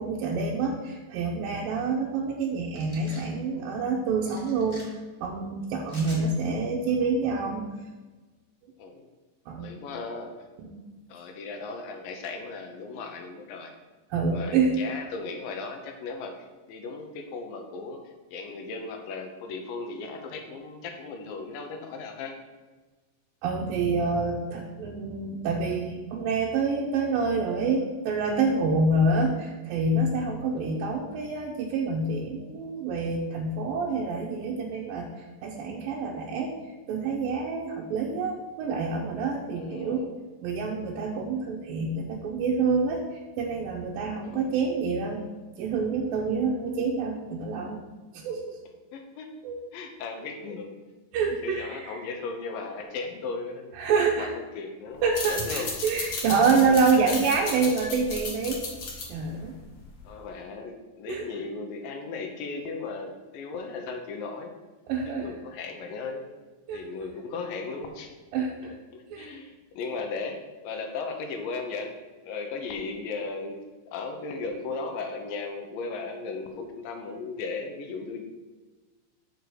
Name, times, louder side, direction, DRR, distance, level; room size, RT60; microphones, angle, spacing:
voice 1, 0.0-7.7 9.5-9.7 10.6-10.7 14.1-14.8 23.4-36.6 36.9-40.1 40.4-45.2 45.6-47.8 48.1-48.6 49.4-49.6 51.1-52.0 53.8-54.3 55.0-58.7 59.1-59.6 61.1-61.3 64.9-65.3 66.7-66.8 68.3-68.7 69.1-69.4, right 4 dB, 90° right, -2 dB, 2.5 m, -27 dB
sound 1, 2.7-3.3 4.3-4.8 5.9-6.2, equal, 10° left, 1.5 m, -46 dB
voice 2, 9.6-10.4 11.1-13.7 14.3-16.4 16.7-22.4 39.5-40.1 44.2-44.5 48.9-49.3 49.7-50.7 51.2-53.8 54.2-55.8 56.7-56.8 57.1-57.2 60.0-64.5 65.2-66.3 66.7-68.1 68.6-71.9 72.2-78.3, left 4 dB, 80° left, 4 dB, 2.6 m, -36 dB
sound 2, 55.0-60.2, left 3 dB, 60° left, 1.3 m, -35 dB
6.6 x 4.6 x 6.8 m, 1.3 s
omnidirectional pair, 4.0 m